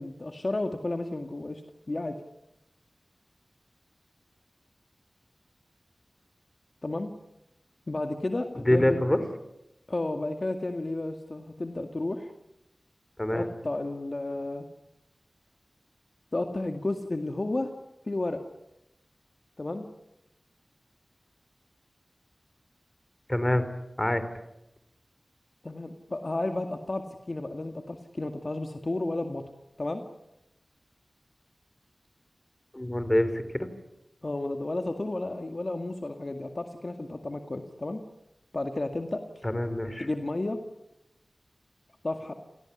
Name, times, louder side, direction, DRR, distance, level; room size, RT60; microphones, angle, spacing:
voice 1, 0.0-1.6 1.9-2.2 6.8-7.1 7.9-9.0 9.9-12.3 13.3-14.7 16.3-17.7 18.1-18.4 19.6-19.8 25.6-29.4 29.8-30.0 34.2-38.0 38.5-39.4 40.0-40.6 42.0-42.3, left 2 dB, 50° left, 5 dB, 2.1 m, -32 dB
voice 2, 8.7-9.2 13.2-13.5 23.3-23.7 24.0-24.2 32.7-33.7 39.4-40.1, left 1 dB, 20° left, 11 dB, 3.9 m, -25 dB
29.0 x 17.5 x 10.0 m, 0.89 s
wide cardioid pair, 45°, 0 cm